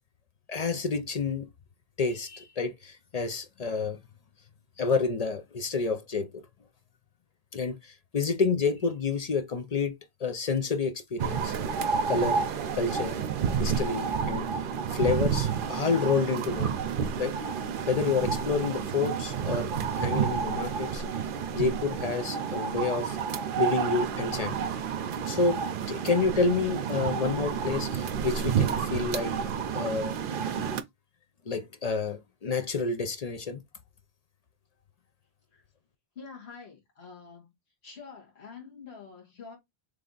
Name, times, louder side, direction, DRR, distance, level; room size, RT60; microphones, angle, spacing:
voice 1, 0.5-1.5 2.0-4.0 4.8-6.4 7.5-11.5 12.1-12.4 12.7-13.2 13.6-14.5 14.9-16.8 17.2-17.4 17.9-21.0 21.5-23.2 23.6-24.6 25.3-29.3 29.7-30.1 31.5-33.6, left 4 dB, 45° left, 0.6 m, -29 dB
sound 1, 11.2-30.8, right 7 dB, 60° right, 0.7 m, -30 dB
voice 2, 36.2-37.5 37.8-39.6, left 5 dB, 70° left, 1.7 m, -46 dB
3.3 x 3.3 x 3.8 m
omnidirectional pair, 1.1 m